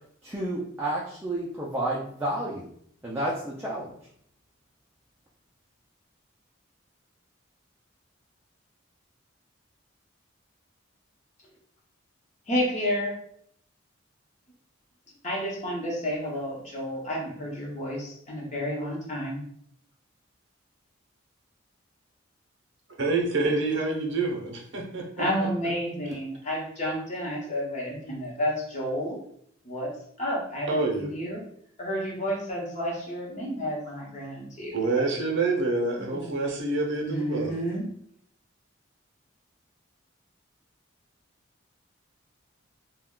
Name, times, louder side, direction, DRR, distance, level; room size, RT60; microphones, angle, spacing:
voice 1, 0.2-2.7 3.0-3.9, right 1 dB, 10° right, -4 dB, 0.3 m, -30 dB
voice 2, 12.5-13.1 15.2-19.4 25.2-29.2 29.6-29.9 30.2-31.4 31.8-34.8 36.1-36.3 37.0-37.9, equal, 35° left, -4 dB, 0.8 m, -30 dB
voice 3, 23.0-25.2 30.7-31.1 34.7-37.5, right 3 dB, 60° right, 0 dB, 0.6 m, -27 dB
2.3 x 2.1 x 3.6 m, 0.66 s
head